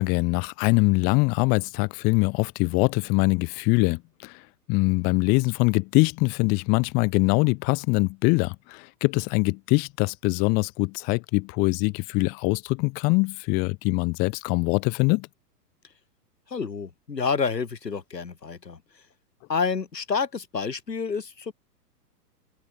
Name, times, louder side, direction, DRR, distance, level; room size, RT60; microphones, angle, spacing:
voice 1, 0.0-4.4 4.7-15.3, left 29 dB, 20° left, 0.5 m, -23 dB
voice 2, 16.5-18.8 19.5-21.5, left 5 dB, 85° left, 5.3 m, -28 dB
open air
hypercardioid pair, 110°, 48 cm